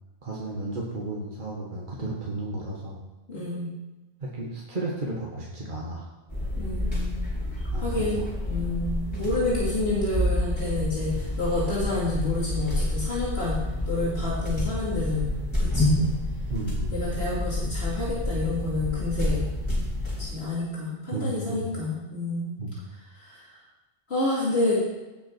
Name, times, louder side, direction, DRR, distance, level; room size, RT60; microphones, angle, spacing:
voice 1, 0.2-3.0 4.2-6.1 7.7-8.2 16.5-16.9 21.1-21.7 22.6-22.8, right 2 dB, 55° right, -4 dB, 1.8 m, -33 dB
voice 2, 3.3-3.7 6.6-7.2 7.7-13.6 13.9-15.3 15.6-16.0 16.9-19.4 20.2-22.6 24.1-24.8, left 2 dB, 80° left, -7 dB, 2.9 m, -29 dB
sound 1, 6.3-20.3, left 1 dB, 25° left, 4.2 m, -28 dB
16.5 x 6.2 x 4.6 m, 1.1 s
omnidirectional pair, 1.0 m